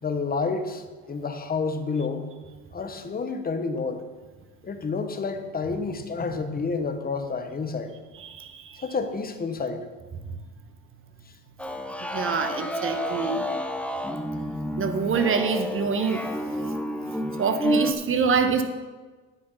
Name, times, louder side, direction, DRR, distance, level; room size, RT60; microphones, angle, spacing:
voice 1, 0.0-2.3 2.7-4.0 4.6-7.9 8.8-9.9, left 4 dB, 30° left, 7 dB, 1.2 m, -29 dB
voice 2, 8.1-8.8 10.2-10.4 12.0-13.4 14.8-16.8 17.1-18.6, right 5 dB, 40° right, 8 dB, 1.2 m, -26 dB
sound 1, 11.6-17.9, equal, 5° left, 0.9 m, -30 dB
9.5 x 8.5 x 5.7 m, 1.3 s
cardioid pair, 105°, 32 cm